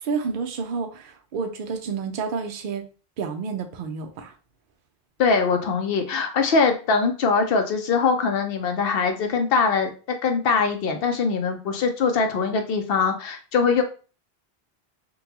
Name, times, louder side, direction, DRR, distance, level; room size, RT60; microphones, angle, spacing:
voice 1, 0.0-2.9 3.2-4.3, right 5 dB, 60° right, 5 dB, 0.7 m, -30 dB
voice 2, 5.2-9.9 10.2-13.8, left 5 dB, 70° left, 5 dB, 0.8 m, -22 dB
3.7 x 2.3 x 2.8 m, 0.36 s
omnidirectional pair, 1.1 m